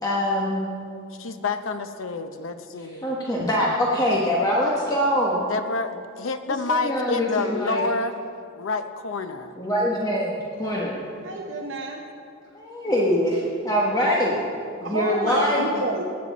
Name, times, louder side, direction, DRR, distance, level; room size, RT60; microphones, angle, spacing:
voice 1, 0.0-0.6 2.8-5.4 6.7-7.8 9.6-11.0 12.5-14.4 14.8-15.7, equal, 20° left, -4 dB, 1.1 m, -23 dB
voice 2, 1.2-3.1 5.5-8.1 8.6-9.5, left 3 dB, 70° left, 9 dB, 0.7 m, -28 dB
voice 3, 11.2-12.0 14.8-16.0, right 2 dB, 60° right, 1 dB, 0.8 m, -29 dB
17.5 x 9.3 x 4.1 m, 2.5 s
head